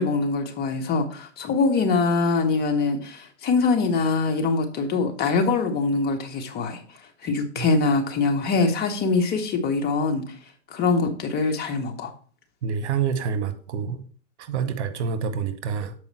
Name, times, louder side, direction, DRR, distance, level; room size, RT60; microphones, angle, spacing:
voice 1, 0.0-6.8 7.2-10.2 10.7-12.1, left 4 dB, 25° left, 1.1 m, -23 dB
voice 2, 12.6-14.1 14.4-15.9, right 6 dB, 65° right, 1.1 m, -27 dB
7.2 x 4.7 x 4.3 m
hypercardioid pair, 120°, 36 cm